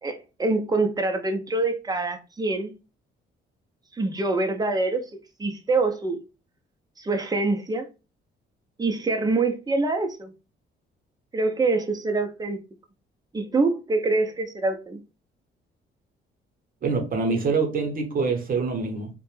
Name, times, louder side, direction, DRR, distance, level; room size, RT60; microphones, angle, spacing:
voice 1, 0.0-2.7 3.9-5.0 5.4-6.2 7.0-7.9 8.8-10.3 11.3-12.6 13.3-15.0, right 3 dB, 20° right, 0.6 m, -25 dB
voice 2, 16.8-19.1, right 4 dB, 45° right, 0.9 m, -25 dB
2.5 x 2.2 x 3.1 m
cardioid pair, 90°, 20 cm